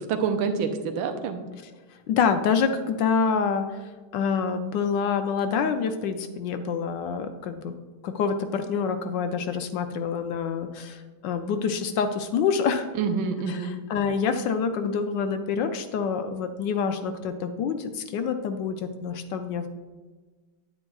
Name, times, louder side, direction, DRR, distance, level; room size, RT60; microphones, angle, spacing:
voice 1, 0.0-1.4 13.0-13.7, right 5 dB, 90° right, 6 dB, 1.5 m, -27 dB
voice 2, 2.1-3.8 4.1-7.7 8.0-12.9 13.5-19.7, left 6 dB, 75° left, 8 dB, 1.2 m, -27 dB
9.0 x 8.9 x 2.3 m, 1.3 s
omnidirectional pair, 2.1 m